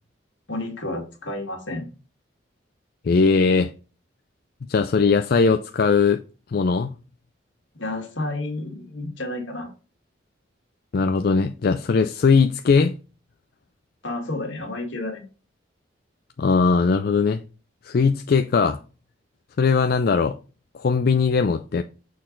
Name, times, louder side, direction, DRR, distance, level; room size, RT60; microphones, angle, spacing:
voice 1, 0.5-1.9 7.7-9.7 14.0-15.3, left 2 dB, 75° left, 1.9 m, -31 dB
voice 2, 3.0-3.7 4.7-6.2 6.5-6.9 10.9-12.9 16.4-17.4 17.8-18.8 19.6-20.4 20.7-21.8, left 5 dB, 55° left, 0.4 m, -19 dB
6.5 x 4.0 x 3.8 m
head